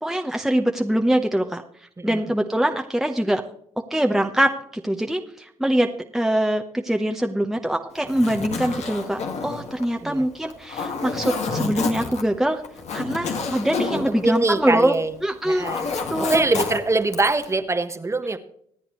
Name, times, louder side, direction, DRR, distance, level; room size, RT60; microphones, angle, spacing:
voice 1, 0.0-1.6 2.0-3.4 3.9-4.5 4.8-12.6 12.9-14.9 15.2-15.7 16.1-16.4, right 1 dB, 5° right, 4 dB, 1.0 m, -23 dB
voice 2, 2.0-2.3 10.0-10.3 13.9-15.1 15.4-15.9 16.2-18.4, right 3 dB, 25° right, 9 dB, 1.3 m, -23 dB
Zipper (clothing), 8.0-15.1 15.4-17.5, left 4 dB, 65° left, 2.0 m, -29 dB
26.0 x 8.7 x 3.2 m, 0.68 s
supercardioid pair, 60°, 12 cm